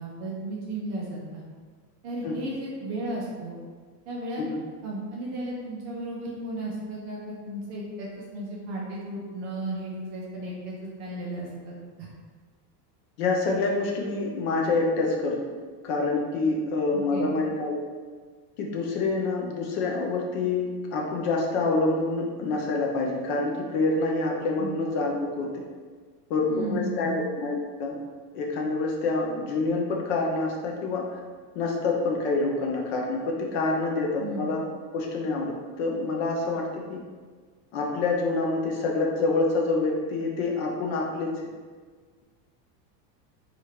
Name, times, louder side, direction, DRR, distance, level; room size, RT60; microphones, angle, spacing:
voice 1, 0.0-1.4 2.0-3.6 4.1-4.4 4.8-12.1 16.9-17.3 24.6-24.7 26.5-27.2 34.2-34.5, right 1 dB, 30° right, -4 dB, 0.4 m, -34 dB
voice 2, 13.2-15.4 15.8-17.8 18.6-25.6 26.3-28.0 28.3-31.2 31.6-34.6 34.9-37.1 37.7-41.5, left 3 dB, 45° left, 0 dB, 0.5 m, -27 dB
2.9 x 2.4 x 4.3 m, 1.6 s
supercardioid pair, 160°, 49 cm